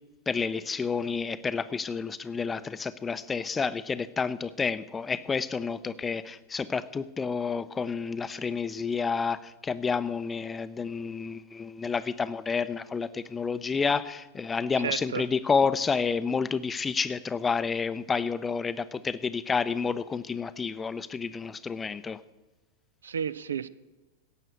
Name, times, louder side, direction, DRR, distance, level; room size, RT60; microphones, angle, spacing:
voice 1, 0.3-22.2, left 5 dB, 15° left, 15 dB, 0.6 m, -30 dB
voice 2, 14.8-15.3 23.0-23.7, right 7 dB, 70° right, 17 dB, 0.5 m, -32 dB
16.5 x 6.6 x 8.2 m, 1.1 s
figure-of-eight pair, 90°, 0 cm